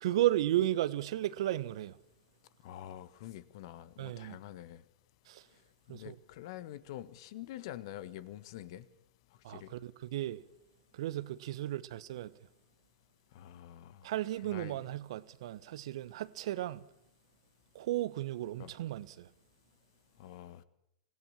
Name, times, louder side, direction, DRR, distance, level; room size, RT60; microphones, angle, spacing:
voice 1, 0.0-2.0 4.0-4.4 5.3-5.4 5.9-6.2 9.4-10.4 10.9-12.3 14.0-16.8 17.7-19.3, right 14 dB, 60° right, 1.0 m, -34 dB
voice 2, 2.6-4.8 5.9-8.9 9.5-9.7 13.3-14.1 14.5-14.8 18.6-18.7 20.2-20.6, left 12 dB, 55° left, 1.4 m, -46 dB
26.0 x 17.0 x 7.2 m
figure-of-eight pair, 100°, 3 cm